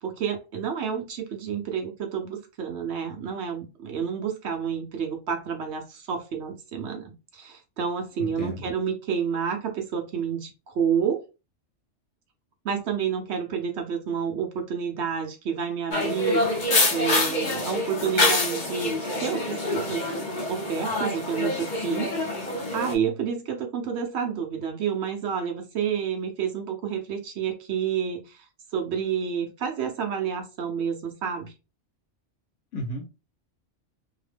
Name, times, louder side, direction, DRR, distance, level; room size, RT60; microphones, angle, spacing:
voice 1, 0.0-11.2 12.6-20.1 20.5-22.1 22.4-28.4 28.7-31.5, right 7 dB, 65° right, 2 dB, 0.9 m, -29 dB
voice 2, 8.2-8.7 32.7-33.0, left 1 dB, 80° left, 1 dB, 1.2 m, -33 dB
sound 1, 15.9-22.9, left 2 dB, 45° left, 0.8 m, -26 dB
2.8 x 2.1 x 3.2 m, 0.29 s
omnidirectional pair, 1.3 m